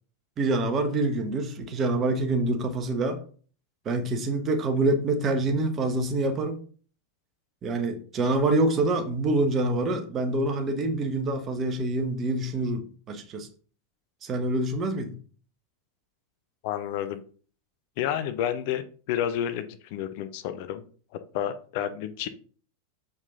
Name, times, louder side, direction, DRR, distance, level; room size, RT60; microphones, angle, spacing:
voice 1, 0.4-3.2 3.8-6.6 7.6-13.5 14.2-15.2, right 2 dB, 25° right, 5 dB, 1.4 m, -26 dB
voice 2, 16.6-17.2 18.0-18.8 19.1-20.8 21.3-22.3, left 10 dB, 50° left, 10 dB, 0.8 m, -30 dB
7.2 x 5.1 x 4.1 m, 0.42 s
figure-of-eight pair, 90°, 0 cm